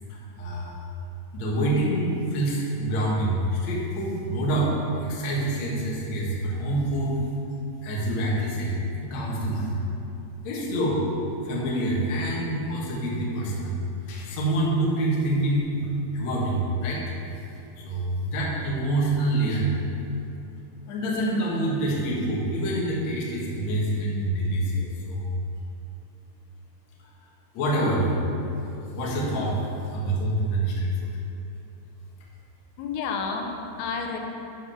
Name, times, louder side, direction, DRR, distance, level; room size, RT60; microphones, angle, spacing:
voice 1, 0.1-0.9 1.3-4.7 5.0-7.2 7.8-9.8 10.4-11.0 11.4-13.8 14.0-15.8 16.1-17.1 17.8-19.7 20.8-25.3 27.5-28.5 28.9-29.6 29.9-30.9, right 1 dB, 65° left, -5 dB, 1.8 m, -26 dB
voice 2, 32.8-34.2, left 5 dB, 85° left, 2 dB, 3.5 m, -30 dB
11.0 x 5.3 x 5.7 m, 2.7 s
omnidirectional pair, 5.7 m